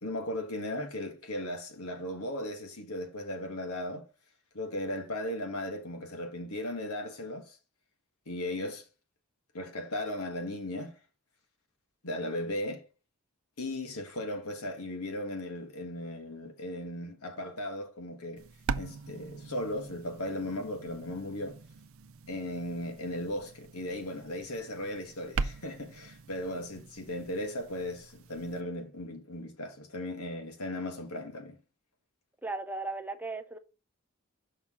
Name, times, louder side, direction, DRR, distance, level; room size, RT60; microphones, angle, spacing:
voice 1, 0.0-4.1 4.5-7.6 8.3-8.8 9.5-10.9 12.0-12.8 13.6-18.4 18.8-21.6 22.3-31.6, left 1 dB, 85° left, 1.5 m, -37 dB
sound 1, 18.4-28.6, right 4 dB, 70° right, 0.5 m, -41 dB
voice 2, 32.4-33.6, right 3 dB, 10° right, 0.4 m, -36 dB
5.9 x 5.6 x 3.7 m
head